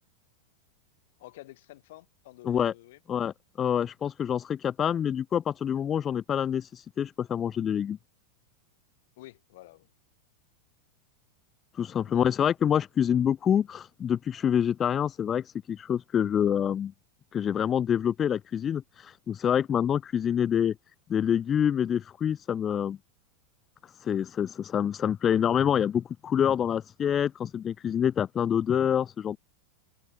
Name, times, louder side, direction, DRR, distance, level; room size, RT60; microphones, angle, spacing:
voice 1, 1.2-3.0 9.2-9.9 11.9-12.3, left 17 dB, 55° left, 6.5 m, -49 dB
voice 2, 3.1-8.0 11.7-16.9 17.3-20.7 21.1-23.0 23.8-29.4, left 9 dB, 25° left, 1.0 m, -26 dB
open air
figure-of-eight pair, 90°, 0 cm